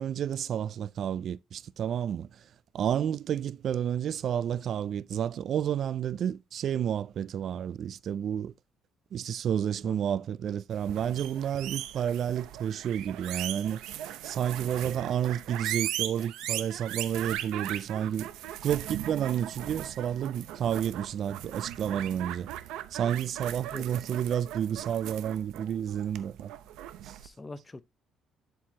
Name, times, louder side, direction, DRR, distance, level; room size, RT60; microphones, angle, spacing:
voice 1, 0.0-2.4 2.7-8.5 9.1-13.8 14.2-18.3 18.6-22.5 22.9-26.5 27.0-27.2, right 9 dB, 50° right, 0.3 m, -30 dB
sound 1, 10.8-27.3, right 12 dB, 85° right, 0.7 m, -38 dB
Liquid, 17.7-22.6 23.0-23.1 24.0-24.1 24.5-24.9 25.5-25.6 26.1-26.2 26.6-26.9, right 7 dB, 70° right, 2.7 m, -57 dB
voice 2, 27.2-27.8, left 2 dB, 15° left, 0.6 m, -44 dB
11.5 x 4.7 x 2.8 m
cardioid pair, 135°, 0 cm